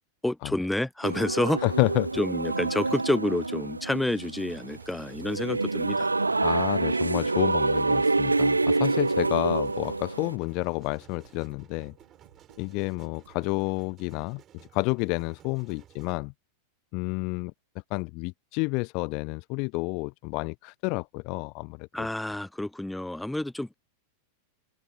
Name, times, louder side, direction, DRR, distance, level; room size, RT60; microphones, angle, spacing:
voice 1, 0.2-1.6 2.2-6.1 21.9-23.7, left 1 dB, 5° left, 0.6 m, -29 dB
sound 1, 1.0-10.3, right 3 dB, 80° right, 0.6 m, -27 dB
voice 2, 1.6-2.1 6.4-11.9 12.6-14.4 14.7-16.3 16.9-17.5 17.9-22.1, left 31 dB, 45° left, 0.6 m, -30 dB
sound 2, 4.0-13.6, right 9 dB, 65° right, 3.7 m, -60 dB
sound 3, 4.6-16.2, right 11 dB, 30° right, 7.8 m, -55 dB
figure-of-eight pair, 90°, 0 cm